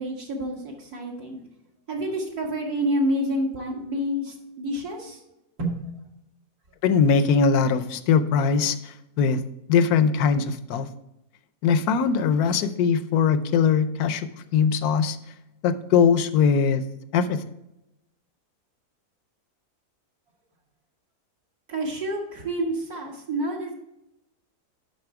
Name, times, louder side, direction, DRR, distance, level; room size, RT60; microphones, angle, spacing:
voice 1, 0.0-1.4 1.9-5.2 5.6-5.7 21.7-23.7, equal, 70° right, -1 dB, 2.2 m, -28 dB
voice 2, 6.8-9.4 9.7-10.9 11.6-15.2 15.6-16.8 17.1-17.4, left 6 dB, 75° left, 12 dB, 1.1 m, -21 dB
11.0 x 4.1 x 4.7 m, 0.87 s
omnidirectional pair, 1.7 m